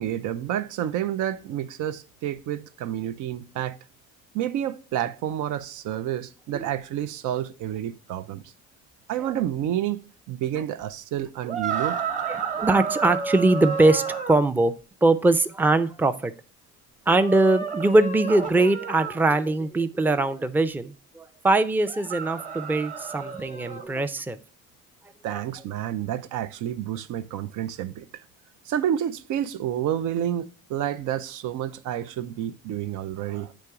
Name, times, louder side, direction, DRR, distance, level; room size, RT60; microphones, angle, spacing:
voice 1, 0.0-3.8 4.3-8.4 9.1-10.0 10.3-12.0 25.2-28.1 28.7-33.5, right 11 dB, 85° right, 0.5 m, -29 dB
sound 1, 11.5-14.4 17.1-19.2 21.8-23.9, right 6 dB, 25° right, 0.9 m, -31 dB
voice 2, 12.3-14.7 15.0-16.3 17.1-24.4 25.3-25.4, right 2 dB, 5° right, 0.4 m, -22 dB
8.0 x 3.0 x 4.6 m
cardioid pair, 90°, 30 cm